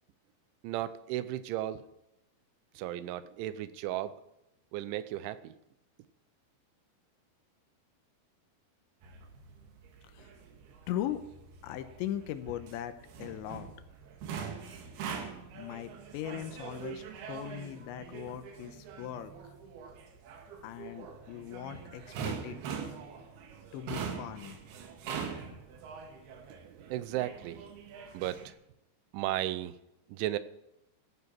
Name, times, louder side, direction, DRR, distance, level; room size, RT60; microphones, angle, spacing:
voice 1, 0.6-1.8 2.8-4.2 4.7-5.5 26.6-27.7 28.1-28.5 29.1-29.8 30.1-30.4, right 13 dB, 85° right, 14 dB, 3.1 m, -35 dB
sound 1, 9.0-28.5, right 6 dB, 65° right, 3.2 m, -43 dB
voice 2, 10.9-11.3 11.6-13.7 15.6-19.3 20.6-22.6 23.7-24.6 25.5-25.6, left 11 dB, 80° left, 10 dB, 3.1 m, -39 dB
14.5 x 9.6 x 5.9 m, 0.86 s
omnidirectional pair, 5.4 m